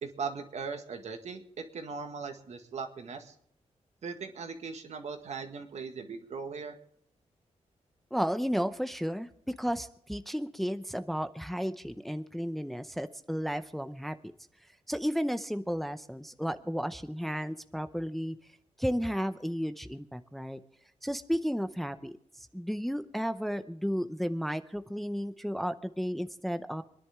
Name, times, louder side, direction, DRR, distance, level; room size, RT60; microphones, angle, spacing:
voice 1, 0.0-3.3 4.0-6.8, right 5 dB, 70° right, 5 dB, 1.8 m, -39 dB
voice 2, 8.1-14.3 14.9-18.4 18.8-20.6 21.0-26.8, equal, ahead, 9 dB, 0.7 m, -33 dB
25.5 x 10.5 x 3.6 m, 0.69 s
wide cardioid pair, 115°, 12 cm